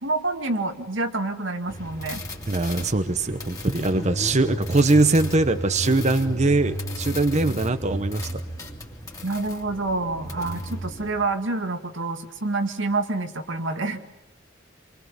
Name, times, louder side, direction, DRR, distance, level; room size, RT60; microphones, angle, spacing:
voice 1, 0.0-2.2 3.9-4.0 7.5-7.6 9.2-14.0, right 2 dB, 85° right, 6 dB, 2.2 m, -27 dB
sound 1, 1.7-11.1, equal, 20° left, 2.7 m, -33 dB
voice 2, 2.5-8.3, right 2 dB, 40° right, 9 dB, 1.0 m, -22 dB
28.0 x 23.5 x 7.2 m, 1.0 s
head